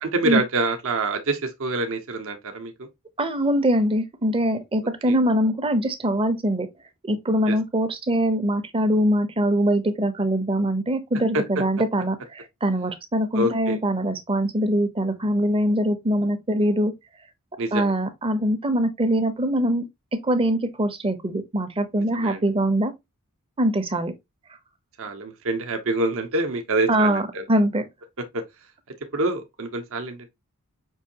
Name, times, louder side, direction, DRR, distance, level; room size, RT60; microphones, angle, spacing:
voice 1, 0.0-2.9 5.1-5.2 7.5-7.6 13.3-13.8 17.6-17.9 22.1-22.4 25.0-27.5 28.3-28.4 29.1-30.3, right 2 dB, 65° right, 0.7 m, -26 dB
voice 2, 3.2-6.7 7.0-16.9 17.7-19.8 20.2-22.9 23.6-24.1 26.9-27.8, right 1 dB, 25° right, 0.6 m, -23 dB
5.4 x 2.6 x 2.7 m
head